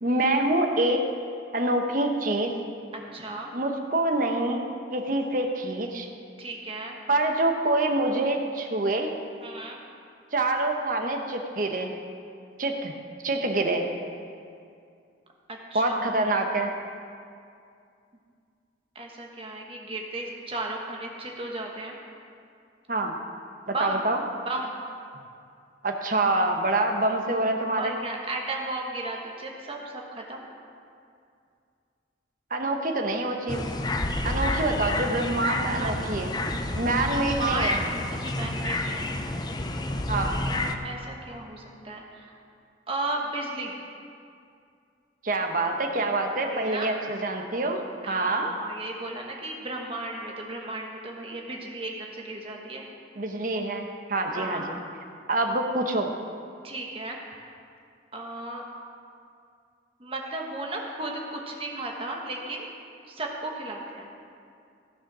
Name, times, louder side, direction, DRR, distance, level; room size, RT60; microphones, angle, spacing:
voice 1, 0.0-1.1 1.5-2.5 3.5-4.6 4.9-6.1 7.1-9.1 10.3-11.9 12.6-12.9 13.2-13.9 15.7-16.7 22.9-23.1 23.7-24.2 25.8-28.0 32.5-33.7 34.2-36.3 36.8-37.8 40.1-40.4 45.2-48.5 53.2-54.8 55.3-56.1, right 2 dB, 45° right, 3 dB, 1.1 m, -26 dB
voice 2, 2.9-3.5 6.4-7.0 9.4-9.8 15.5-16.1 18.9-22.0 23.7-24.0 24.4-24.8 27.8-30.4 35.8-36.2 37.1-39.1 40.4-42.3 42.9-43.8 46.4-46.9 48.0-52.8 54.3-54.8 56.6-57.2 58.1-58.6 60.0-62.7 63.0-64.1, right 2 dB, 30° right, 0 dB, 1.4 m, -35 dB
sound 1, 33.5-40.7, left 2 dB, 20° left, 0.5 m, -29 dB
15.5 x 6.5 x 6.1 m, 2.4 s
head